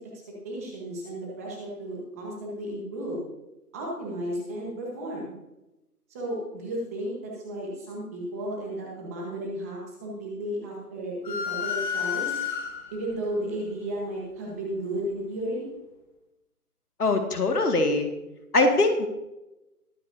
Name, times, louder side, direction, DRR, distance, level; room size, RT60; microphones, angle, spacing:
voice 1, 0.4-3.3 3.7-5.3 6.1-12.4 12.9-15.7, right 1 dB, 10° right, -3 dB, 1.0 m, -33 dB
sound 1, 11.2-13.1, left 7 dB, 30° left, 1.8 m, -30 dB
voice 2, 17.0-18.1 18.5-19.1, left 2 dB, 75° left, 5 dB, 2.0 m, -22 dB
21.5 x 8.0 x 2.7 m, 0.97 s
figure-of-eight pair, 160°, 46 cm